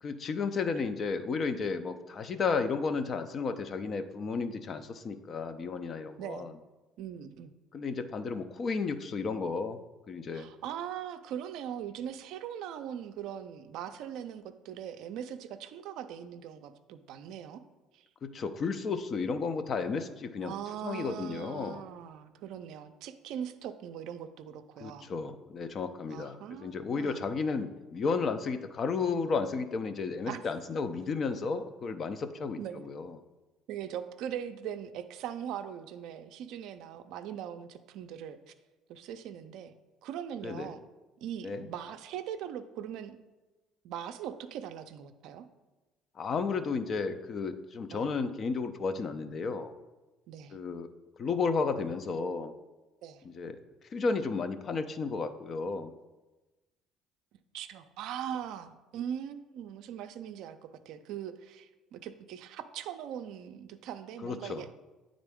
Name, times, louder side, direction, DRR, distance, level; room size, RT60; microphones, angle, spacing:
voice 1, 0.0-6.5 7.7-9.8 10.1-10.5 18.2-20.5 20.8-21.8 24.8-33.2 40.4-40.7 41.4-41.7 46.2-49.7 50.5-50.9 51.2-52.5 53.2-53.6 53.9-55.9 64.2-64.6, left 4 dB, 45° left, 9 dB, 0.5 m, -33 dB
voice 2, 7.0-7.5 10.3-17.6 17.9-18.0 20.4-25.1 26.1-27.2 30.2-30.4 32.6-32.8 33.7-38.4 38.9-39.7 40.0-40.8 41.2-43.2 43.8-45.5 47.9-48.1 50.3-50.6 53.0-53.2 57.5-60.6 60.9-64.7, right 9 dB, 70° right, 9 dB, 0.4 m, -40 dB
8.8 x 3.8 x 3.5 m, 1.1 s
supercardioid pair, 75°, 0 cm